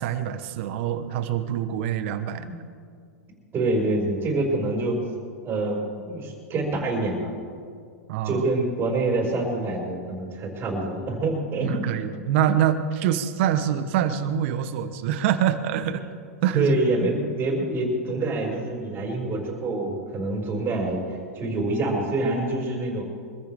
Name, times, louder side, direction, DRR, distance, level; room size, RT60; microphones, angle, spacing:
voice 1, 0.0-2.5 8.1-8.4 11.6-16.0 16.4-16.8, right 9 dB, 55° right, 10 dB, 1.4 m, -25 dB
voice 2, 3.5-5.0 5.4-7.3 8.2-12.1 16.5-23.0, right 2 dB, 25° right, -2 dB, 5.8 m, -26 dB
25.0 x 15.0 x 3.8 m, 2.2 s
hypercardioid pair, 110°, 8 cm